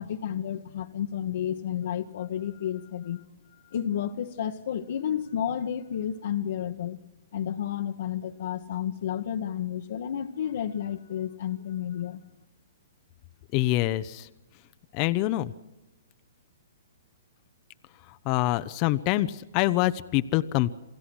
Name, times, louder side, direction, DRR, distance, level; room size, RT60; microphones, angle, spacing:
voice 1, 0.0-3.2 3.7-7.0 7.3-12.2, left 9 dB, 65° left, 2 dB, 1.1 m, -31 dB
voice 2, 13.5-14.3 14.9-15.5 18.2-20.7, left 16 dB, 35° left, 13 dB, 0.7 m, -25 dB
28.0 x 15.5 x 6.2 m, 1.0 s
hypercardioid pair, 135°, 0 cm